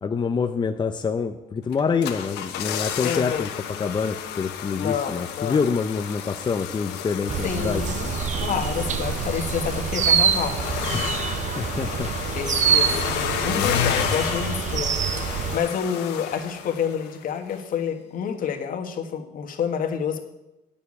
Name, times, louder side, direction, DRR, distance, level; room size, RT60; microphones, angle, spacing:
voice 1, 0.0-3.5 3.8-7.8 10.9-12.1, left 5 dB, 25° left, 5 dB, 0.6 m, -26 dB
sound 1, 1.7-17.2 17.5-17.6, left 9 dB, 85° left, 1.2 m, -31 dB
voice 2, 3.0-3.5 4.8-5.6 7.4-10.6 12.3-20.2, left 7 dB, 55° left, 5 dB, 1.5 m, -28 dB
sound 2, 7.3-15.6, right 7 dB, 45° right, 0.7 m, -26 dB
9.0 x 6.9 x 8.6 m, 0.96 s
cardioid pair, 110°, 17 cm